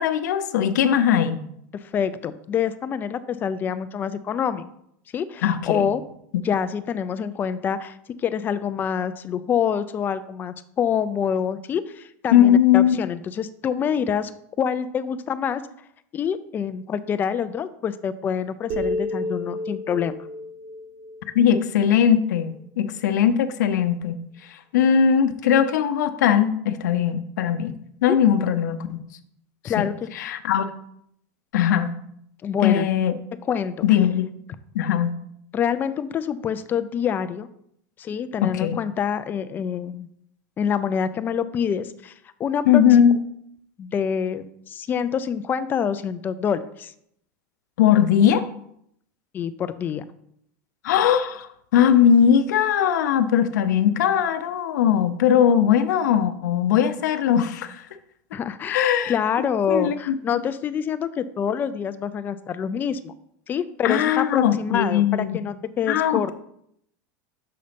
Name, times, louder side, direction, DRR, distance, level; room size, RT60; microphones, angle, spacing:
voice 1, 0.0-1.4 5.4-5.9 12.3-13.0 21.3-24.2 24.5-27.7 28.0-29.0 29.6-29.9 30.2-30.7 31.5-31.9 32.6-33.1 33.8-34.3 34.7-35.1 38.4-38.8 42.7-43.2 47.8-48.5 50.8-57.8 58.7-59.1 59.7-60.1 63.8-65.4 65.9-66.3, left 9 dB, 85° left, 11 dB, 0.6 m, -19 dB
voice 2, 1.7-4.7 5.1-6.0 6.4-14.3 14.6-15.6 16.1-20.3 28.1-28.2 29.6-30.0 32.4-32.9 33.4-33.9 35.5-37.5 38.0-40.1 40.6-42.1 42.4-42.8 43.8-46.9 49.3-50.0 58.3-63.1 63.5-66.3, left 7 dB, 20° left, 13 dB, 0.3 m, -26 dB
sound 1, 18.7-22.2, left 1 dB, 60° right, 1.0 m, -31 dB
6.7 x 3.9 x 5.1 m, 0.72 s
supercardioid pair, 150°, 9 cm